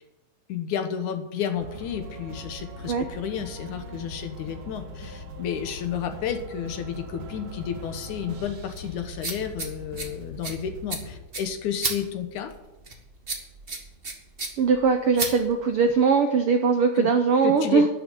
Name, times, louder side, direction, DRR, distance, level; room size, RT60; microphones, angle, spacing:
voice 1, 0.5-12.5 17.0-17.1 17.4-17.9, left 8 dB, 70° left, 7 dB, 2.5 m, -31 dB
sound 1, 1.6-11.2, left 1 dB, 60° right, 2.6 m, -40 dB
sound 2, 7.6-16.0, right 3 dB, 35° right, 0.9 m, -36 dB
voice 2, 14.6-17.9, right 5 dB, 75° right, 6 dB, 1.3 m, -21 dB
12.5 x 6.8 x 9.1 m, 0.99 s
omnidirectional pair, 3.7 m